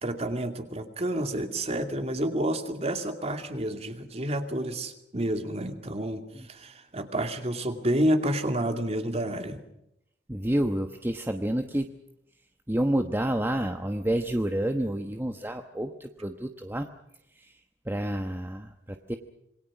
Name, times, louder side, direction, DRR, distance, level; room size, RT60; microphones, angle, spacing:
voice 1, 0.0-6.2 6.5-9.6, right 1 dB, 35° right, 6 dB, 2.4 m, -29 dB
voice 2, 10.3-11.9 12.7-16.9 17.4-17.5 17.8-19.2, right 1 dB, 15° right, 6 dB, 1.0 m, -29 dB
27.0 x 21.5 x 6.1 m, 0.82 s
head